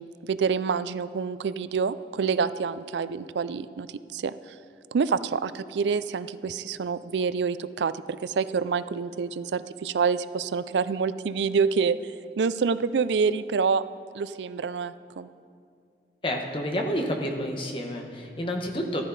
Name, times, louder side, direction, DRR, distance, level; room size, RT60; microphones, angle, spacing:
voice 1, 0.0-3.9 4.1-4.6 4.9-13.8 14.1-15.3, right 5 dB, 85° right, 15 dB, 0.4 m, -27 dB
voice 2, 16.2-19.0, equal, 30° left, 2 dB, 1.2 m, -29 dB
14.0 x 12.5 x 4.1 m, 2.3 s
head